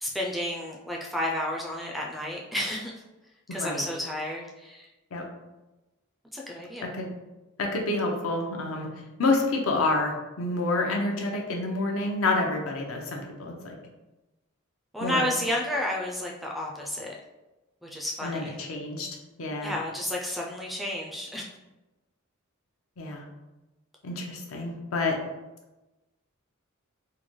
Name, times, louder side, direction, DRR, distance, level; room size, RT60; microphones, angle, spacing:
voice 1, 0.0-2.9 3.5-4.9 6.3-6.9 14.9-17.1 17.8-18.6 19.6-21.5, left 1 dB, ahead, -2 dB, 0.3 m, -31 dB
voice 2, 3.5-3.8 5.1-5.2 6.8-7.1 7.6-8.9 9.2-13.7 15.0-15.3 18.2-19.1 19.4-19.8 23.0-23.2 24.0-25.2, left 2 dB, 75° left, 1 dB, 0.6 m, -28 dB
3.7 x 2.1 x 3.1 m, 1.0 s
head